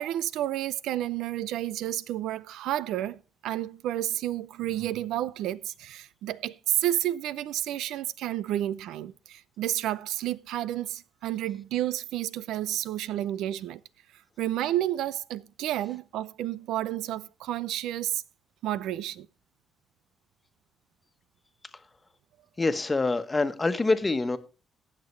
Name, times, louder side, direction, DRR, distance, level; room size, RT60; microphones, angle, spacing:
voice 1, 0.0-13.8 14.4-18.2 18.6-19.3, right 13 dB, 85° right, 0.5 m, -31 dB
voice 2, 22.6-24.4, left 3 dB, 20° left, 1.3 m, -26 dB
18.0 x 6.7 x 3.3 m
cardioid pair, 90°, 0 cm